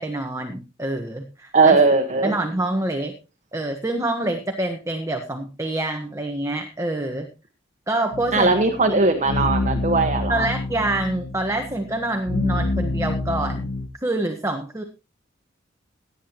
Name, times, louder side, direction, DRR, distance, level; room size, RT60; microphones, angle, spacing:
voice 1, 0.0-1.8 2.2-3.1 3.5-7.3 7.9-8.5 8.9-9.1 10.3-13.7 14.0-14.8, right 1 dB, 15° right, 5 dB, 1.3 m, -26 dB
voice 2, 1.5-2.3 8.3-10.5, right 3 dB, 40° right, 5 dB, 1.4 m, -19 dB
sound 1, 8.1-13.9, left 2 dB, 55° left, 1.5 m, -27 dB
17.5 x 9.8 x 3.0 m, 0.31 s
head